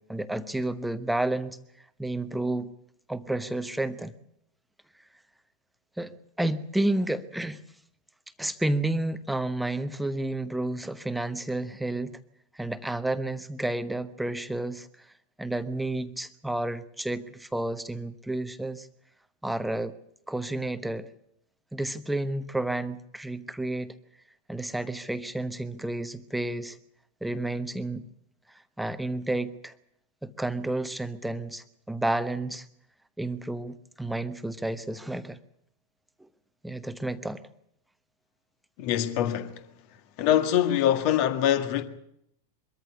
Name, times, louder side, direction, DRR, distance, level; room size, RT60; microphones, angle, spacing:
voice 1, 0.1-1.6 2.0-2.7 3.1-4.2 6.0-7.6 8.4-12.2 12.5-15.1 15.4-18.9 19.4-19.9 20.3-21.1 21.7-23.9 24.5-26.8 27.2-28.1 28.8-29.7 30.2-32.7 33.2-35.4 36.2-36.3 36.6-37.4, right 2 dB, 5° right, 1.0 m, -31 dB
voice 2, 38.8-39.6 40.2-41.8, left 11 dB, 45° left, 1.8 m, -24 dB
23.5 x 14.0 x 8.5 m
figure-of-eight pair, 90°, 0 cm